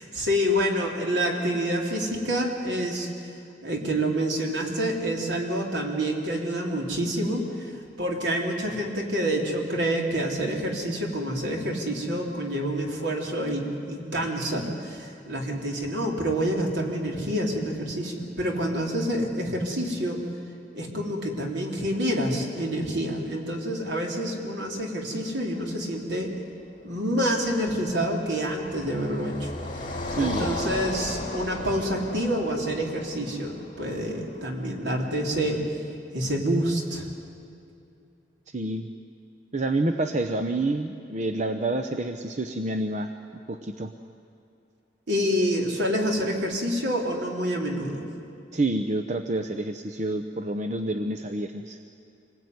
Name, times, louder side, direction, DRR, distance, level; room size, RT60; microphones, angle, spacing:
voice 1, 0.0-3.1 3.6-7.7 8.0-20.2 20.7-26.3 26.8-29.5 30.2-35.6 36.1-37.1 45.1-48.0, equal, 70° right, 0 dB, 3.8 m, -27 dB
Car passing by, 27.2-34.4, left 1 dB, 25° left, 4.5 m, -35 dB
voice 2, 30.1-30.5 38.5-38.9 39.5-43.1 43.5-43.9 48.5-51.8, right 2 dB, 40° right, 6 dB, 0.9 m, -28 dB
26.0 x 20.5 x 9.6 m, 2.6 s
head